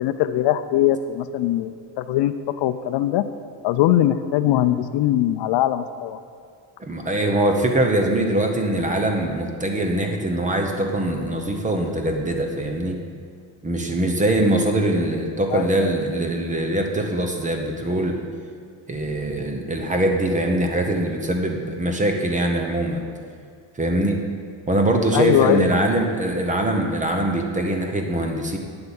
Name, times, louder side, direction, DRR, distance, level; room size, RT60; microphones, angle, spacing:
voice 1, 0.0-3.2 3.6-6.2 15.5-15.9 25.1-25.8, left 12 dB, 65° left, 11 dB, 0.5 m, -21 dB
voice 2, 6.8-13.0 13.6-18.2 18.9-23.0 23.7-24.2 24.7-28.6, right 1 dB, 15° right, 3 dB, 0.9 m, -22 dB
8.8 x 7.8 x 7.1 m, 2.1 s
cardioid pair, 165°, 46 cm